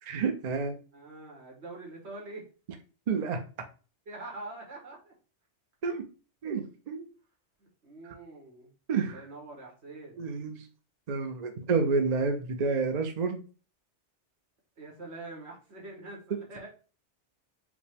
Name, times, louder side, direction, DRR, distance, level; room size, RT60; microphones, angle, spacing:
voice 1, 0.0-0.8 3.1-3.4 5.8-6.1 6.4-7.1 8.9-9.3 10.2-10.7 11.1-13.4, right 4 dB, 50° right, 5 dB, 0.5 m, -29 dB
voice 2, 0.9-2.4 4.1-5.1 7.8-8.7 9.0-10.3 14.8-16.7, right 2 dB, 65° right, 0 dB, 1.5 m, -44 dB
5.0 x 2.1 x 3.3 m, 0.36 s
omnidirectional pair, 1.2 m